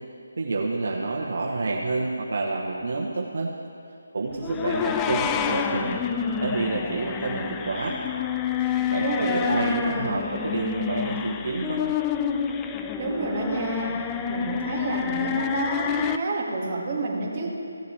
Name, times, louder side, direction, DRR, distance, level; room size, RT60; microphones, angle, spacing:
voice 1, 0.4-3.5 4.1-6.0 6.4-8.0 8.6-11.8, right 3 dB, 60° right, -2 dB, 1.2 m, -28 dB
sound 1, 4.4-16.2, left 8 dB, 15° left, 0.3 m, -28 dB
voice 2, 9.0-9.7 13.0-13.9 14.3-17.6, right 3 dB, 30° right, -5 dB, 2.2 m, -29 dB
17.0 x 7.9 x 3.4 m, 2.6 s
figure-of-eight pair, 165°, 0 cm